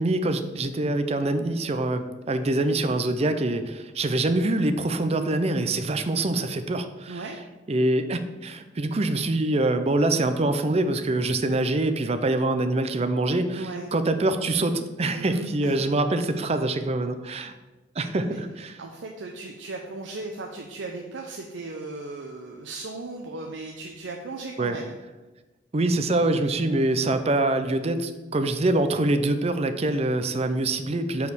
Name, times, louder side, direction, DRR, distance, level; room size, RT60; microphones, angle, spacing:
voice 1, 0.0-7.2 7.7-17.5 18.0-18.8 24.6-24.8 25.7-31.3, right 2 dB, 35° right, 9 dB, 0.5 m, -25 dB
voice 2, 13.5-13.9 15.1-15.8 18.3-18.4 18.8-24.9, right 3 dB, 80° right, 2 dB, 0.6 m, -36 dB
5.4 x 4.6 x 6.2 m, 1.2 s
head